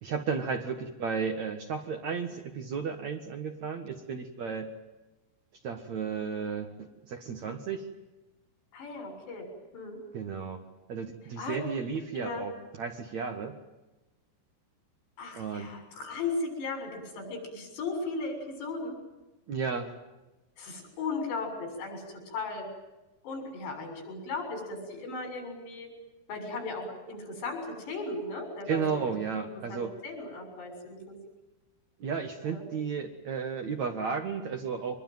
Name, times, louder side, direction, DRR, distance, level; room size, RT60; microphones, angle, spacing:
voice 1, 0.0-4.7 5.6-7.9 10.1-10.6 10.9-13.5 15.3-15.7 19.5-19.9 28.7-30.0 32.0-35.0, right 6 dB, 55° right, 5 dB, 2.2 m, -33 dB
voice 2, 8.7-9.5 9.7-10.0 11.4-11.6 12.1-12.4 15.2-19.0 20.6-22.7 23.2-25.9 26.3-29.0 29.7-31.2 32.4-32.6, left 3 dB, 90° left, 3 dB, 9.0 m, -36 dB
24.5 x 22.0 x 9.3 m, 1.1 s
omnidirectional pair, 4.8 m